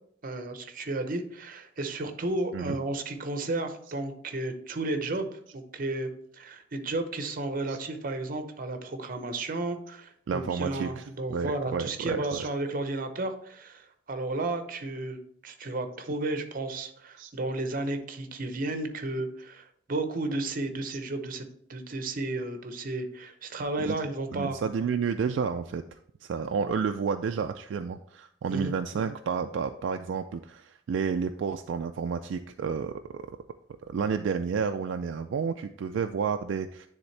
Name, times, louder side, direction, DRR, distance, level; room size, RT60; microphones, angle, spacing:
voice 1, 0.2-24.6 28.5-28.7, right 2 dB, 45° right, 7 dB, 0.7 m, -33 dB
voice 2, 10.3-12.5 17.2-17.3 23.8-24.0 24.3-33.3 33.9-36.9, right 6 dB, 70° right, 7 dB, 0.3 m, -31 dB
9.7 x 3.5 x 3.2 m, 0.67 s
head